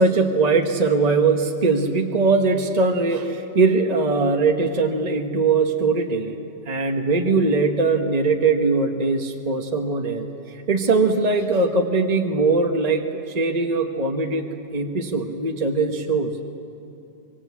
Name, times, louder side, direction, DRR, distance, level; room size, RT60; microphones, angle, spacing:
voice 1, 0.0-6.3 6.7-14.4 14.7-16.4, right 3 dB, 35° right, 4 dB, 1.3 m, -21 dB
25.5 x 22.5 x 8.4 m, 2.9 s
omnidirectional pair, 1.2 m